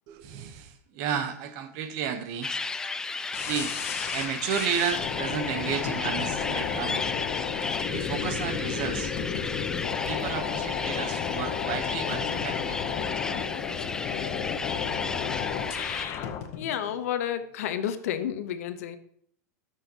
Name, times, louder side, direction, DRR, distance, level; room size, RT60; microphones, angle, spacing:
voice 1, 0.1-2.5 3.4-3.7 4.1-7.0 7.9-9.1 10.1-12.8 13.1-13.5, right 8 dB, 45° right, 0.9 m, -32 dB
sound 1, 1.1-1.3 2.0-2.2 2.5-2.6 3.2-3.3 5.8-7.1 7.9-8.0 9.0-10.4 11.0-11.1 12.1-13.2 13.5-13.8 14.1-14.4 16.2-17.8, left 7 dB, 55° left, 1.5 m, -42 dB
sound 2, 2.4-16.1, left 3 dB, 10° left, 0.3 m, -34 dB
sound 3, 3.3-16.5, left 8 dB, 30° left, 0.7 m, -32 dB
voice 2, 16.5-19.0, left 10 dB, 70° left, 0.9 m, -31 dB
13.5 x 6.4 x 2.9 m
supercardioid pair, 155°, 8 cm